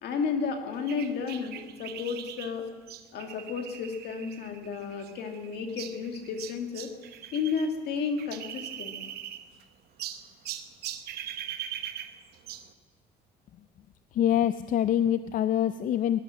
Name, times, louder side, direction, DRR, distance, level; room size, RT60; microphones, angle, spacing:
voice 1, 0.0-2.7 3.1-6.9 7.3-9.0, left 5 dB, 75° left, 4 dB, 2.1 m, -32 dB
sound 1, 0.9-7.7 8.0-9.6 10.0-12.7, right 11 dB, 70° right, 0.9 m, -41 dB
voice 2, 14.1-16.2, left 10 dB, 50° left, 13 dB, 0.4 m, -25 dB
19.0 x 11.5 x 6.4 m, 1.4 s
cardioid pair, 110°, 17 cm